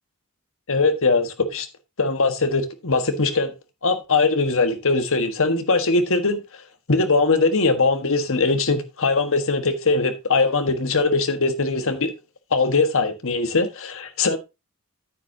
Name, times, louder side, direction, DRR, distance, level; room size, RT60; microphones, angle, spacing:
voice 1, 0.7-1.7 2.0-3.5 3.8-6.4 6.9-12.1 12.5-14.4, left 3 dB, 65° left, 1.5 m, -21 dB
9.3 x 9.3 x 2.8 m
head